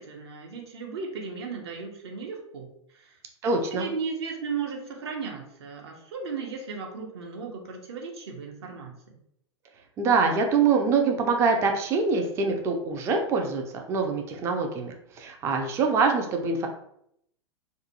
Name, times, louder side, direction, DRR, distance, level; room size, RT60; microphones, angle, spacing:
voice 1, 0.0-2.7 2.9-3.2 3.7-9.2, right 5 dB, 60° right, 1 dB, 0.7 m, -36 dB
voice 2, 3.4-3.9 10.0-16.7, right 4 dB, 15° right, 3 dB, 0.3 m, -24 dB
2.4 x 2.1 x 2.7 m, 0.72 s
figure-of-eight pair, 95°, 16 cm